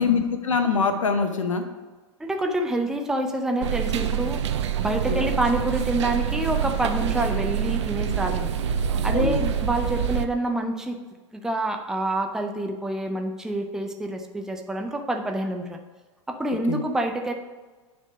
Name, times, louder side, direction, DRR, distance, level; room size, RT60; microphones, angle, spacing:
voice 1, 0.0-1.6 5.1-5.3 9.1-9.4 16.7-16.8, left 5 dB, 75° left, 7 dB, 0.7 m, -23 dB
voice 2, 2.2-4.4 4.8-8.5 9.0-11.0 11.3-15.8 16.3-17.3, right 1 dB, 5° right, 4 dB, 0.5 m, -27 dB
sound 1, 3.6-10.3, right 8 dB, 60° right, 0.5 m, -26 dB
9.1 x 3.4 x 5.1 m, 1.3 s
figure-of-eight pair, 90°, 17 cm